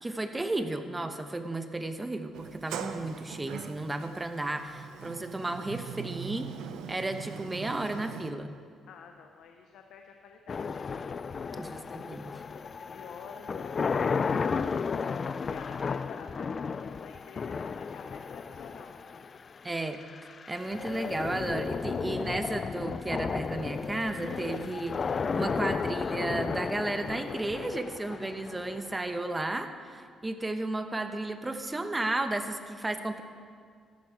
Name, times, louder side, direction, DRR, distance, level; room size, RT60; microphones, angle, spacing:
voice 1, 0.0-6.5 6.9-8.5 11.6-12.4 19.6-20.0 20.5-33.2, right 2 dB, 15° right, 8 dB, 1.0 m, -33 dB
Sliding door, 2.3-8.3, right 8 dB, 85° right, 0.7 m, -41 dB
voice 2, 8.9-10.9 11.2-11.8 12.8-14.6 15.4-19.2, left 6 dB, 80° left, 4 dB, 0.8 m, -50 dB
sound 1, 10.5-29.5, left 5 dB, 40° left, 0.3 m, -34 dB
14.0 x 11.0 x 4.7 m, 2.1 s
cardioid pair, 90°, 0 cm